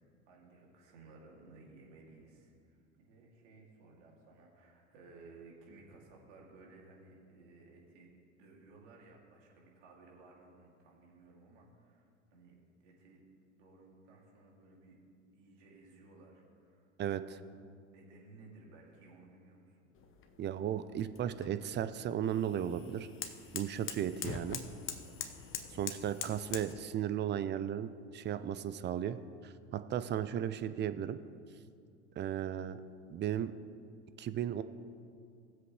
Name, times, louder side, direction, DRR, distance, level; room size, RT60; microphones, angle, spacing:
voice 1, 0.3-12.6 12.8-13.2 13.5-15.0 15.3-17.5 17.9-19.9 25.5-25.8, right 3 dB, 70° right, -2 dB, 2.7 m, -58 dB
sound 1, 20.0-26.7, left 7 dB, 35° left, 1.1 m, -44 dB
voice 2, 20.4-23.1 23.5-24.6 25.7-29.2 29.4-31.2 32.2-32.8 33.1-33.5 34.2-34.6, right 10 dB, 30° right, 12 dB, 0.6 m, -35 dB
18.5 x 7.7 x 3.2 m, 2.2 s
hypercardioid pair, 80°, 37 cm